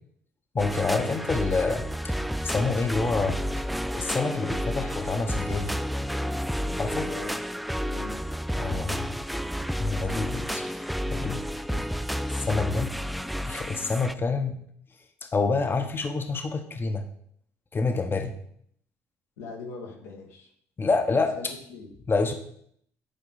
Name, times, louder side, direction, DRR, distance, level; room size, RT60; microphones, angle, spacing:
voice 1, 0.5-2.1 2.4-3.4 3.9-5.7 6.8-7.1 8.5-9.3 9.8-10.7 11.1-11.4 12.4-12.9 13.5-14.6 15.2-17.0 17.7-18.3 20.8-21.3 22.1-22.3, left 4 dB, 30° left, 6 dB, 1.0 m, -27 dB
sound 1, 0.6-14.1, equal, ahead, 0.3 m, -31 dB
voice 2, 6.9-7.4 7.9-8.2 11.7-11.8 12.5-12.6 19.4-20.5 21.1-21.9, left 3 dB, 85° left, 0 dB, 1.5 m, -41 dB
10.0 x 4.5 x 4.1 m, 0.66 s
hypercardioid pair, 60°, 7 cm